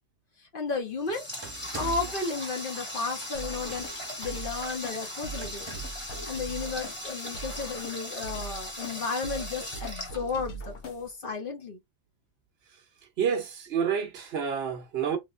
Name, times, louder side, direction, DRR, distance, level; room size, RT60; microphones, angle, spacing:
voice 1, 0.5-1.3 1.8-3.9 4.2-11.8, left 4 dB, 50° left, 0.8 m, -33 dB
Water tap faucet, 0.7-10.9, left 1 dB, 25° left, 1.5 m, -39 dB
sound 1, 1.4-2.2 3.6-4.1 5.4-6.1, right 5 dB, 25° right, 0.7 m, -41 dB
sound 2, 3.3-11.3, right 2 dB, 80° left, 1.1 m, -42 dB
voice 2, 13.2-15.2, right 7 dB, 65° right, 0.8 m, -28 dB
3.1 x 3.0 x 2.4 m
omnidirectional pair, 1.2 m